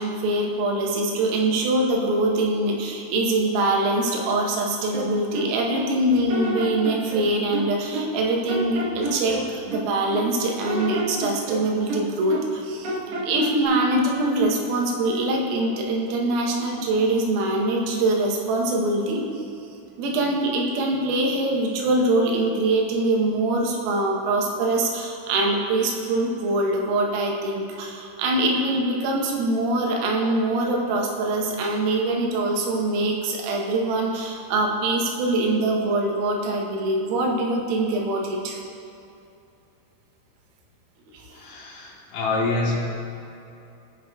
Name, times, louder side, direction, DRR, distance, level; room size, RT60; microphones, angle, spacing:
voice 1, 0.0-13.0 13.2-19.3 20.0-38.6 41.1-41.2, right 2 dB, 85° right, -1 dB, 3.7 m, -23 dB
sound 1, 4.9-5.9 6.3-8.2 8.5-10.3 10.7-12.6 12.8-13.7, right 2 dB, 70° right, 2.5 m, -30 dB
voice 2, 41.3-42.8, left 3 dB, 75° left, -3 dB, 3.2 m, -26 dB
17.5 x 6.4 x 2.3 m, 2.7 s
omnidirectional pair, 5.9 m